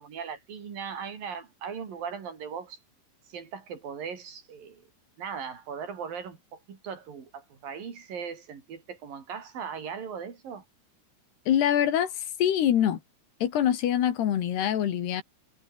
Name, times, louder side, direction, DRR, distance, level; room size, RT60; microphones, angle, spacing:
voice 1, 0.0-2.8 3.3-4.8 5.2-10.6, right 6 dB, 55° right, 5.1 m, -38 dB
voice 2, 11.5-13.0 13.4-15.2, left 10 dB, 70° left, 4.1 m, -24 dB
omnidirectional pair, 5.0 m